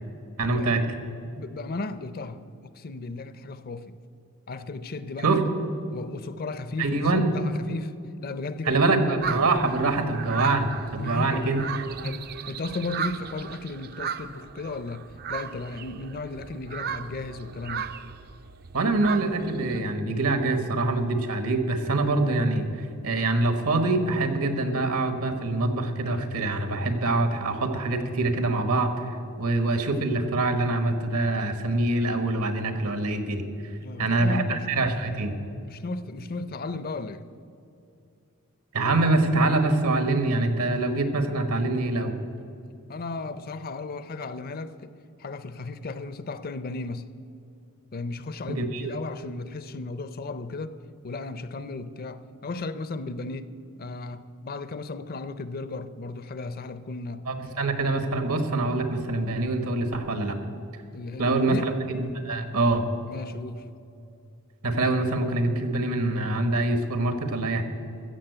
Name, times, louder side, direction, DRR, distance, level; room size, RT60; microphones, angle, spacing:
voice 1, 0.4-0.8 5.2-5.4 6.8-7.3 8.7-11.8 18.7-33.4 34.0-35.3 38.7-42.1 48.5-48.8 57.3-60.4 61.2-62.8 64.6-67.6, right 2 dB, 75° right, 1.3 m, -25 dB
voice 2, 1.3-4.0 4.5-5.4 5.9-8.9 11.0-11.6 12.0-17.9 33.8-34.7 35.7-37.3 42.9-44.9 45.2-47.1 47.9-50.8 51.0-57.6 60.9-61.7 63.1-63.7, left 3 dB, 40° left, 0.5 m, -35 dB
sound 1, 9.2-19.8, right 7 dB, 45° right, 0.4 m, -36 dB
14.5 x 7.3 x 7.9 m
head